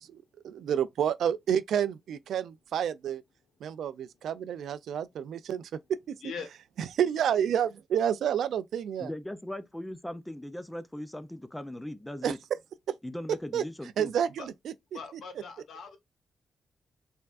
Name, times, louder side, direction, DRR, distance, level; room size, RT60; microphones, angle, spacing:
voice 1, 0.1-3.2 3.6-5.7 6.1-6.2 6.9-9.1 12.2-12.4 13.5-13.6 14.0-14.5, right 9 dB, 80° right, 0.3 m, -29 dB
voice 2, 6.2-6.6 14.4-14.5 14.9-16.0, left 5 dB, 65° left, 1.0 m, -41 dB
voice 3, 9.0-12.4 13.0-14.1, left 1 dB, 5° left, 0.4 m, -39 dB
4.5 x 3.6 x 2.4 m
wide cardioid pair, 155°, 0 cm